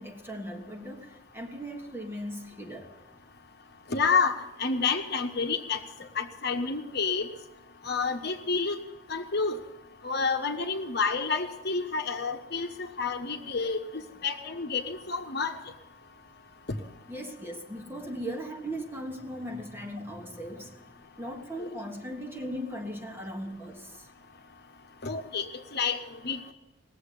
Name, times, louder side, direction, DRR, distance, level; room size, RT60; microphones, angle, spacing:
voice 1, 0.0-2.9 17.1-20.8 21.2-24.1, equal, 10° right, 1.4 m, -38 dB
voice 2, 3.9-5.8 6.2-7.3 7.8-8.8 9.1-9.6 10.0-12.7 13.0-13.8 14.2-15.5 21.6-21.7 25.0-25.4 25.7-26.0 26.2-26.5, left 5 dB, 50° left, 1.2 m, -29 dB
18.5 x 7.7 x 9.9 m
head